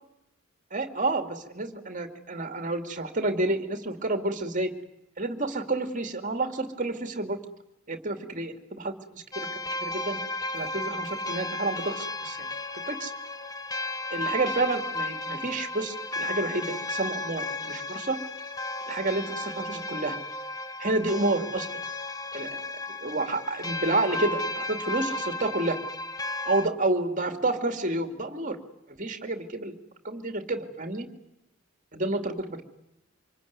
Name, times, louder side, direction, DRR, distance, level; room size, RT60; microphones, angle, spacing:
voice 1, 0.7-4.7 5.2-7.4 7.9-9.5 9.8-10.2 10.5-12.5 12.9-13.1 14.1-18.2 18.9-20.2 20.8-21.7 22.3-22.6 23.0-25.8 26.5-28.6 28.9-29.7 30.0-31.1 31.9-32.6, right 2 dB, 40° right, 7 dB, 2.5 m, -29 dB
sound 1, 9.3-26.7, left 2 dB, 20° left, 1.2 m, -34 dB
26.0 x 22.5 x 9.5 m, 0.89 s
head